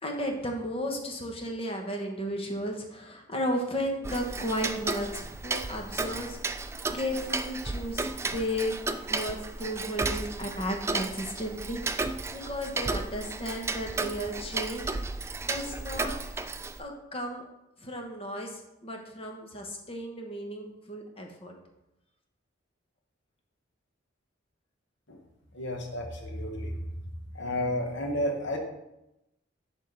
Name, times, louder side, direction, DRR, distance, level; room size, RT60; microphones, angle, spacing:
voice 1, 0.0-8.8 9.1-14.9 15.4-16.1 16.8-17.5 17.8-21.5, equal, 30° left, 2 dB, 1.1 m, -34 dB
Tick-tock, 4.0-16.8, right 3 dB, 15° right, 0.3 m, -34 dB
voice 2, 25.5-26.7 27.3-28.6, left 1 dB, 65° left, 2 dB, 1.3 m, -31 dB
11.0 x 3.6 x 4.0 m, 0.90 s
head